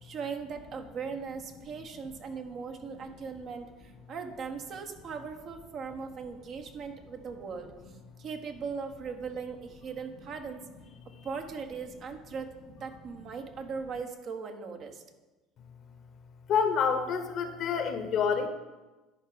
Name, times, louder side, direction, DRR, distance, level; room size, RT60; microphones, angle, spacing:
voice 1, 0.0-7.7 8.2-10.6 11.2-12.5 12.8-15.0, right 5 dB, 50° right, 5 dB, 1.1 m, -39 dB
voice 2, 16.5-18.5, left 6 dB, 55° left, 8 dB, 0.9 m, -27 dB
10.5 x 4.6 x 5.0 m, 1.2 s
hypercardioid pair, 75°, 0 cm